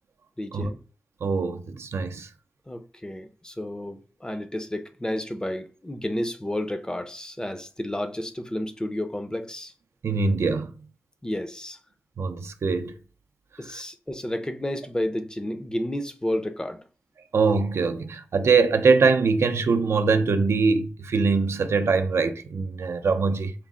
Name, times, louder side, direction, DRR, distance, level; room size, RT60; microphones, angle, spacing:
voice 1, 0.4-0.8 2.7-9.7 11.2-11.8 13.6-16.8, left 1 dB, 15° left, 0.5 m, -31 dB
voice 2, 1.2-2.3 10.0-10.7 12.2-12.9 13.7-13.8 17.3-23.5, right 4 dB, 80° right, 0.4 m, -23 dB
4.5 x 2.0 x 3.6 m
wide cardioid pair, 70°, 4 cm